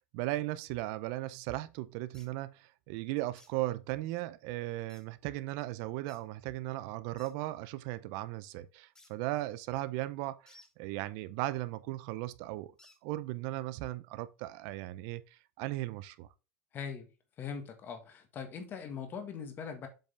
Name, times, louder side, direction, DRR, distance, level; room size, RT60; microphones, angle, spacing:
voice 1, 0.1-12.7 13.0-16.3, right 17 dB, 50° right, 0.6 m, -37 dB
sound 1, 2.1-2.3 3.3-3.5 4.9-5.0 6.1-6.2 7.2-7.3 8.9-9.1 10.5-10.7 12.8-13.0, left 2 dB, 10° left, 1.1 m, -59 dB
voice 2, 16.7-17.1 17.4-19.9, left 6 dB, 25° left, 1.6 m, -41 dB
7.6 x 4.9 x 3.3 m
supercardioid pair, 150°, 8 cm